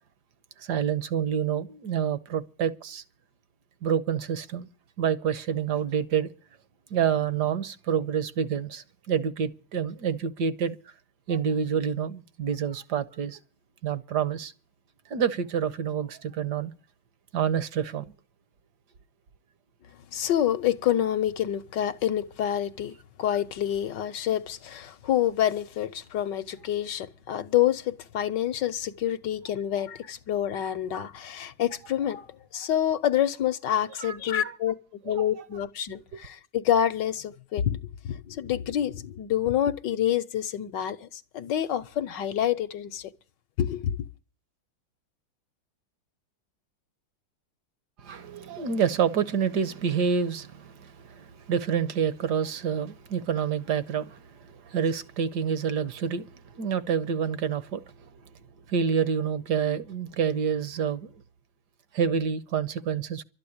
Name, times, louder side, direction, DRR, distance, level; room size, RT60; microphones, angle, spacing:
voice 1, 0.6-3.0 3.8-4.7 5.0-6.3 6.9-10.8 11.3-13.4 13.8-14.5 15.1-16.7 17.3-18.1 34.0-34.2 34.4-34.5 35.1-35.4 48.0-58.1 58.7-61.1 61.9-63.2, right 7 dB, 60° right, 1.4 m, -28 dB
voice 2, 20.1-32.3 32.5-34.8 35.0-43.1 43.6-44.0, left 11 dB, 65° left, 1.4 m, -27 dB
12.5 x 9.7 x 8.6 m
omnidirectional pair, 2.3 m